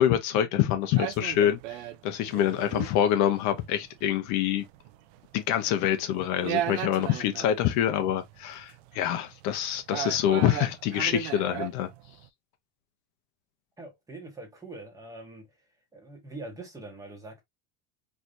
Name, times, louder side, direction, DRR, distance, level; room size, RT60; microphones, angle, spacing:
voice 1, 0.0-4.6 5.3-11.9, left 11 dB, 50° left, 0.7 m, -26 dB
sound 1, 0.8-12.3, right 12 dB, 75° right, 0.6 m, -36 dB
voice 2, 13.8-15.5 15.9-17.4, right 2 dB, 10° right, 1.1 m, -43 dB
4.5 x 3.3 x 2.5 m
cardioid pair, 170°, 35 cm